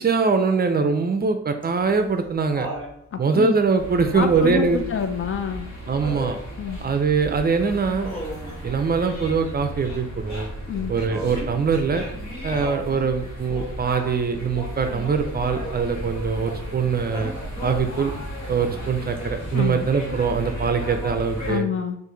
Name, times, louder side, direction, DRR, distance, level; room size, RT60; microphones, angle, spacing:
voice 1, 0.0-2.7 3.2-4.8 5.9-6.4 6.8-8.1 8.6-10.5 10.9-12.1 12.4-17.3 17.6-18.1 18.5-21.7, right 5 dB, 35° right, 7 dB, 0.4 m, -22 dB
Laughter, 1.6-2.9 4.3-4.8 6.0-6.4 8.0-8.6 11.1-11.6 12.5-12.9 15.2-15.7 17.1-17.8 19.2-19.3, right 1 dB, 15° right, 1.2 m, -35 dB
voice 2, 3.1-3.5 4.1-5.7 6.6-6.8 10.7-10.9 19.5-19.9 21.5-22.0, left 7 dB, 45° left, 8 dB, 0.4 m, -27 dB
sound 1, 3.8-21.6, equal, 65° left, 1.5 m, -35 dB
4.7 x 2.5 x 3.8 m, 0.77 s
wide cardioid pair, 120°, 30 cm